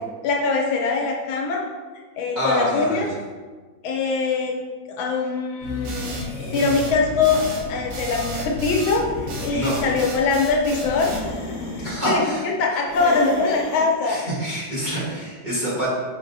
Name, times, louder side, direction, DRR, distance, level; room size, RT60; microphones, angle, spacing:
voice 1, 0.2-1.6 2.2-3.1 3.8-4.5 5.0-6.1 6.5-9.1 9.4-11.1 12.1-14.2, left 4 dB, 80° left, 0 dB, 1.5 m, -22 dB
voice 2, 2.3-3.1 9.5-9.8 11.8-12.4 14.0-15.9, equal, 30° right, -10 dB, 1.2 m, -26 dB
sound 1, 5.6-10.1 10.7-12.0 12.9-13.9, left 2 dB, 60° left, 0.6 m, -32 dB
sound 2, 5.8-11.3, right 2 dB, 75° right, 1.4 m, -34 dB
4.6 x 3.9 x 2.6 m, 1.4 s
omnidirectional pair, 2.2 m